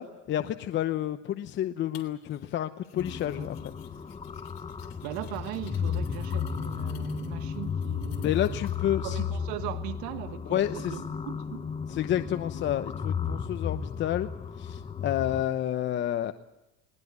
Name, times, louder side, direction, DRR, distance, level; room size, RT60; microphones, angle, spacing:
voice 1, 0.0-3.7 8.2-9.2 10.5-11.0 11.9-14.3 14.5-16.3, left 11 dB, 40° left, 0.9 m, -30 dB
sound 1, 1.9-2.6 2.8-8.8, left 13 dB, 60° left, 3.4 m, -56 dB
sound 2, 3.0-15.4, left 7 dB, 20° left, 1.1 m, -34 dB
voice 2, 5.0-8.6 9.0-11.7, right 14 dB, 75° right, 1.7 m, -39 dB
21.0 x 19.5 x 9.5 m
cardioid pair, 130°, 30 cm